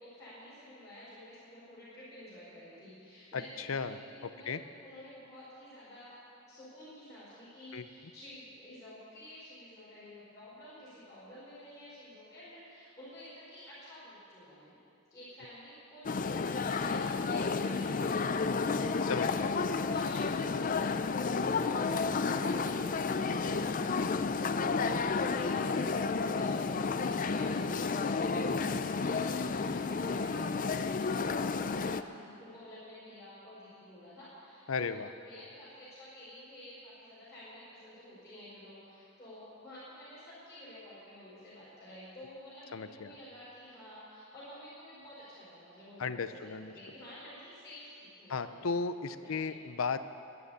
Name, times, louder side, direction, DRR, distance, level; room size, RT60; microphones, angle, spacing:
voice 1, 0.0-4.5 4.8-6.2 6.5-14.8 15.1-24.0 24.9-48.7 49.2-49.6, left 1 dB, 15° left, -13 dB, 4.7 m, -51 dB
voice 2, 3.3-4.6 7.7-7.8 19.1-19.8 34.7-35.1 42.7-43.1 46.0-46.7 48.3-50.0, left 5 dB, 80° left, 11 dB, 0.6 m, -35 dB
sound 1, 16.0-32.0, left 4 dB, 40° left, 0.4 m, -31 dB
13.0 x 9.4 x 9.6 m, 2.6 s
head